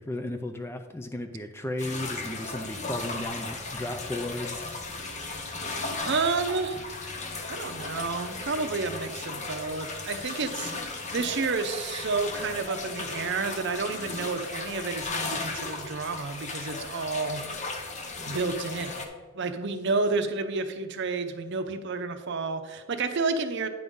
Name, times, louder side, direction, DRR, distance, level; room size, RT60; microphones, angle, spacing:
voice 1, 0.0-4.6, left 1 dB, 10° left, 7 dB, 0.3 m, -34 dB
sound 1, 1.8-19.1, left 3 dB, 35° left, 0.8 m, -36 dB
voice 2, 6.0-6.8 7.5-17.4 18.2-19.1 19.3-23.7, right 4 dB, 60° right, 8 dB, 0.6 m, -30 dB
9.4 x 3.6 x 5.4 m, 1.4 s
head